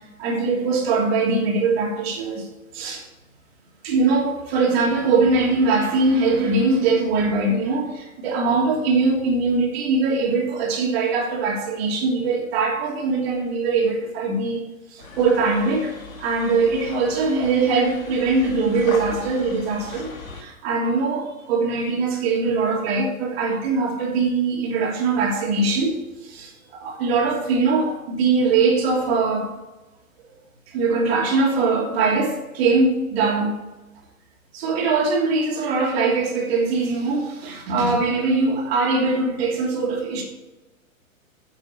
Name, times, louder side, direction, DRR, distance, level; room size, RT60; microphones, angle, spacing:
voice 1, 0.2-2.5 2.7-3.0 3.8-29.5 30.7-33.5 34.5-40.2, right 3 dB, 45° right, 0 dB, 2.8 m, -22 dB
sound 1, 15.0-20.4, left 4 dB, 70° left, 2.0 m, -38 dB
10.0 x 6.9 x 4.5 m, 1.1 s
figure-of-eight pair, 110°, 42 cm